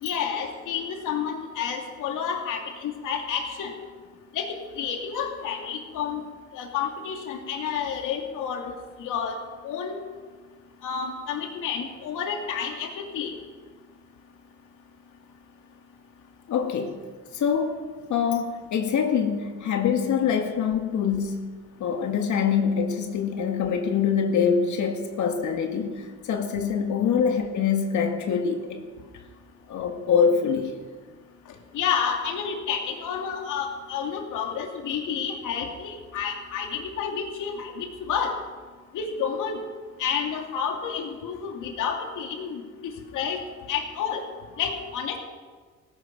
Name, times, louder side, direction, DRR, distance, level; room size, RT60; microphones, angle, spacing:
voice 1, 0.0-3.7 4.3-6.2 6.5-8.7 9.0-9.4 9.6-10.0 10.8-13.3 31.7-38.3 38.9-39.6 40.0-43.4 43.7-44.2 44.6-45.2, left 7 dB, 90° left, 3 dB, 2.6 m, -30 dB
voice 2, 16.5-17.0 17.3-28.8 29.7-30.7, left 7 dB, 70° left, 4 dB, 2.0 m, -25 dB
17.0 x 15.5 x 5.3 m, 1.5 s
cardioid pair, 90°, 30 cm